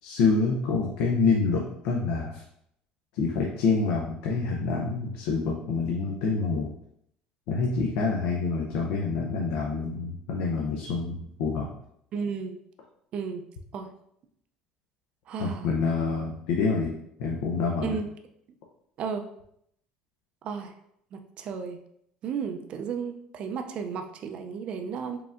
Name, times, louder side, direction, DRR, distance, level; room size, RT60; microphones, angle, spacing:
voice 1, 0.0-2.4 3.1-6.7 7.5-11.7 15.4-16.9 17.2-18.0, left 4 dB, 80° left, -1 dB, 0.6 m, -27 dB
voice 2, 12.1-12.5 13.1-13.4 13.7-13.9 15.3-15.7 17.8-18.1 19.0-19.3 20.4-20.7 21.1-21.8 22.2-25.2, right 6 dB, 40° right, 6 dB, 0.4 m, -33 dB
4.8 x 3.5 x 2.5 m, 0.73 s
cardioid pair, 155°, 3 cm